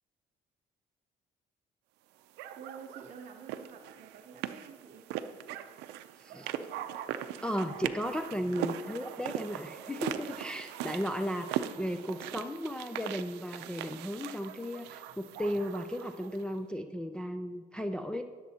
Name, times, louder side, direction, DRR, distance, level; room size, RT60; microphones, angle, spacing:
sound 1, 2.4-16.4, right 11 dB, 85° right, 0.5 m, -40 dB
voice 1, 2.6-5.1, right 6 dB, 45° right, 3 dB, 0.7 m, -49 dB
voice 2, 6.2-6.5 7.4-18.2, equal, 5° left, 5 dB, 0.4 m, -35 dB
18.0 x 7.3 x 2.8 m, 1.5 s
cardioid pair, 110°, 17 cm